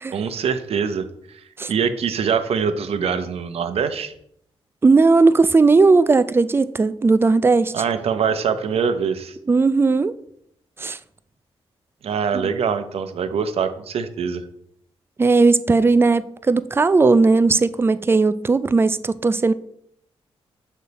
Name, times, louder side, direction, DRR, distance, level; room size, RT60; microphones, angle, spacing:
voice 1, 0.1-4.1 7.7-9.4 12.0-14.4, right 6 dB, 70° right, 0.7 m, -24 dB
voice 2, 4.8-7.7 9.5-10.2 10.8-11.0 12.3-12.5 15.2-19.5, right 3 dB, 20° right, 0.4 m, -17 dB
6.7 x 5.5 x 4.1 m
cardioid pair, 95°, 11 cm